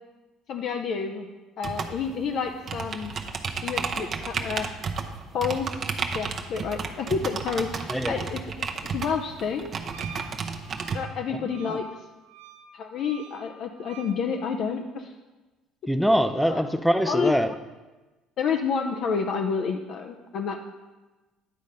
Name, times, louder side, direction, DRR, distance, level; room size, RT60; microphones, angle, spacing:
voice 1, 0.5-1.3 1.6-3.1 3.6-4.7 5.3-5.7 6.1-9.7 10.9-11.8 12.7-15.1 16.5-16.6 17.1-17.3 18.4-20.6, left 6 dB, 60° left, 4 dB, 0.5 m, -29 dB
sound 1, 1.6-11.0, right 5 dB, 45° right, 0.7 m, -32 dB
Wind instrument woodwind instrument, 9.9-14.2, right 6 dB, 90° right, 0.6 m, -46 dB
voice 2, 15.9-17.5, equal, ahead, 10 dB, 0.5 m, -23 dB
9.4 x 4.1 x 5.1 m, 1.2 s
supercardioid pair, 80°, 0 cm